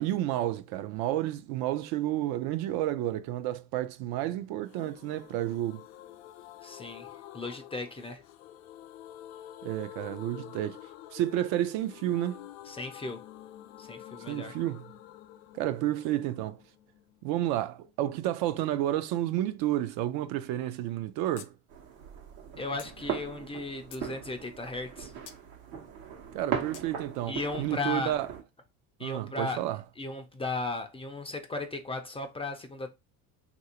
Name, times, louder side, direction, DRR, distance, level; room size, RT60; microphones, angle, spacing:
voice 1, 0.0-5.8 9.6-10.9 11.1-12.4 14.3-14.8 15.5-16.6 17.2-21.5 26.3-28.3 29.0-29.8, right 13 dB, 65° right, 0.6 m, -31 dB
sound 1, 4.7-18.3 18.5-18.6 18.9-19.0, left 12 dB, 85° left, 0.6 m, -49 dB
voice 2, 6.6-7.1 7.3-8.2 12.7-13.2 13.8-14.5 22.6-25.1 27.3-28.1 29.0-29.6 30.0-32.9, left 2 dB, 15° left, 0.4 m, -36 dB
sound 2, 21.4-21.5 21.8-21.9 22.8-22.9 23.5-24.1 25.3-25.4 26.7-26.9, left 9 dB, 50° left, 0.7 m, -48 dB
sound 3, 21.7-28.4, right 8 dB, 90° right, 1.1 m, -39 dB
3.1 x 2.6 x 2.8 m
supercardioid pair, 95°, 40 cm